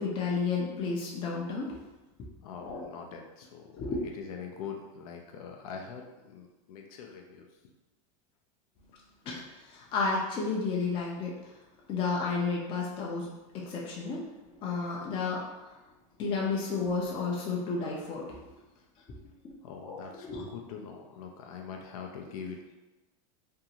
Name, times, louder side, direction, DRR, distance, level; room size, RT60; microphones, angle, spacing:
voice 1, 0.0-1.8 2.6-2.9 3.8-4.0 9.3-11.6 11.9-15.8 16.2-18.4 19.4-20.5, left 4 dB, 30° left, -3 dB, 0.4 m, -32 dB
voice 2, 2.4-3.8 4.2-7.7 18.8-18.9 19.2-19.3 19.6-22.8, left 6 dB, 85° left, 2 dB, 0.4 m, -43 dB
2.6 x 2.4 x 2.8 m, 1.1 s
supercardioid pair, 145°, 18 cm